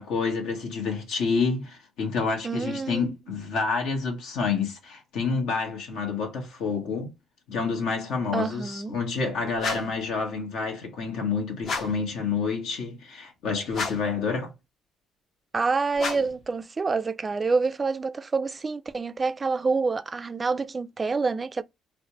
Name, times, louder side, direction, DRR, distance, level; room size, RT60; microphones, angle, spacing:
voice 1, 0.0-7.1 7.5-14.5, left 5 dB, 80° left, 1.1 m, -28 dB
voice 2, 2.4-3.2 8.3-9.0 15.5-21.6, right 4 dB, 30° right, 0.3 m, -27 dB
sound 1, 9.6-10.1 11.6-12.1 13.7-14.2 15.9-16.4, left 4 dB, 60° left, 0.8 m, -32 dB
3.2 x 2.1 x 2.8 m
supercardioid pair, 80°, 0 cm